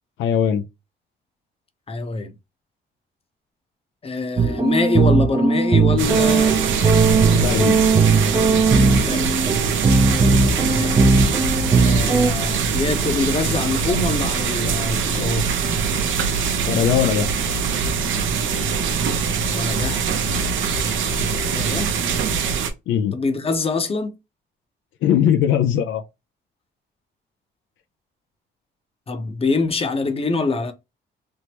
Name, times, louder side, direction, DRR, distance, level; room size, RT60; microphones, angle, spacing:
voice 1, 0.2-0.6 7.3-7.8 16.7-17.3 22.9-23.2 25.0-26.0, left 9 dB, 80° left, 0.5 m, -19 dB
voice 2, 1.9-2.3 4.0-7.6 8.3-8.7 9.0-9.4 10.7-11.0 11.8-15.6 19.5-20.1 21.5-21.9 23.1-24.1 29.1-30.7, left 3 dB, 30° left, 0.8 m, -25 dB
sound 1, 4.4-12.3, right 4 dB, 25° right, 0.5 m, -18 dB
sound 2, 6.0-22.7, right 5 dB, 75° right, 0.7 m, -23 dB
3.5 x 2.0 x 2.9 m
cardioid pair, 90°, 20 cm